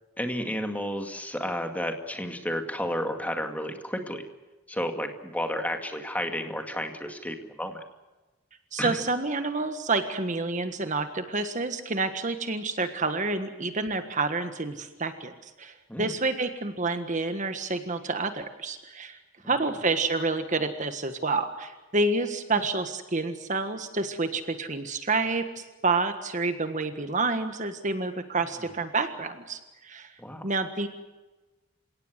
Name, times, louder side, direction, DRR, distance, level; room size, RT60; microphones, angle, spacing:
voice 1, 0.2-4.2 4.7-7.8 8.8-9.0 15.9-16.1 30.2-30.5, equal, 5° left, 5 dB, 2.2 m, -32 dB
voice 2, 8.7-19.2 19.5-30.1 30.4-30.9, right 3 dB, 35° right, 8 dB, 1.5 m, -29 dB
28.5 x 17.5 x 8.2 m, 1.2 s
head